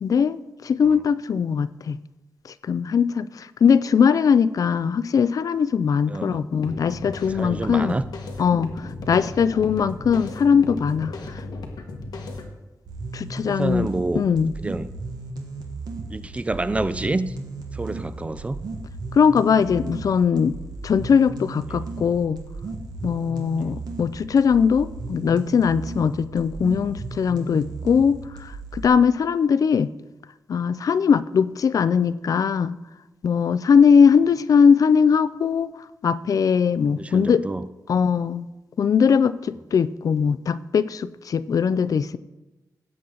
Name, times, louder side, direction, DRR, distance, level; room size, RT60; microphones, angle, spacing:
voice 1, 0.0-2.0 2.6-8.0 8.4-11.4 13.1-13.9 14.1-14.5 19.1-20.6 20.8-22.4 23.0-29.9 30.5-32.8 33.2-35.7 36.0-37.4 37.9-38.5 38.8-42.2, left 6 dB, 60° left, 15 dB, 0.4 m, -20 dB
voice 2, 6.1-6.4 7.3-8.1 13.4-14.2 14.6-14.9 16.1-17.3 17.7-18.6 21.7-21.8 23.6-23.7 36.9-37.7 41.7-41.9, right 2 dB, 20° right, 14 dB, 0.4 m, -28 dB
sound 1, 6.5-12.5, left 2 dB, 85° left, 1.4 m, -35 dB
sound 2, 12.9-28.9, right 3 dB, 80° right, 1.6 m, -35 dB
17.0 x 7.8 x 3.9 m, 1.1 s
wide cardioid pair, 140°, 7 cm